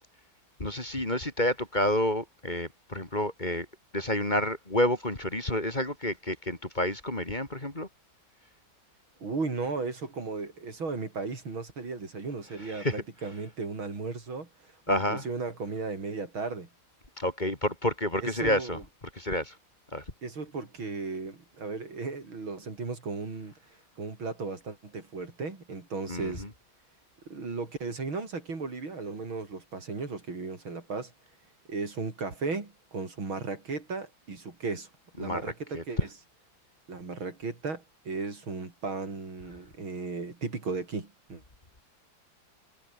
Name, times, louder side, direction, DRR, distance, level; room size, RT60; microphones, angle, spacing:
voice 1, 0.6-3.7 3.9-7.9 12.6-13.0 14.9-15.2 17.2-18.8 19.1-19.6 19.9-20.0 26.1-26.5 35.2-36.1, left 1 dB, 20° left, 3.1 m, -29 dB
voice 2, 9.2-16.7 18.2-18.8 20.2-23.5 24.0-26.5 27.3-31.1 31.7-34.9 35.2-36.0 36.9-41.4, right 4 dB, 85° right, 5.2 m, -35 dB
omnidirectional pair, 2.2 m